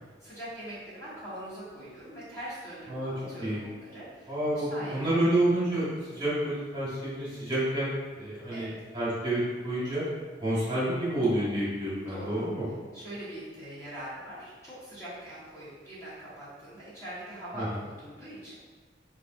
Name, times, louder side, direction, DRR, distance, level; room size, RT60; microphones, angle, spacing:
voice 1, 0.2-5.2 8.5-8.7 12.0-12.5 12.9-18.5, right 1 dB, 20° left, -12 dB, 1.2 m, -42 dB
voice 2, 4.3-10.0 10.4-12.6 17.5-17.8, right 1 dB, 25° right, -9 dB, 1.4 m, -29 dB
4.9 x 2.5 x 2.6 m, 1.4 s
head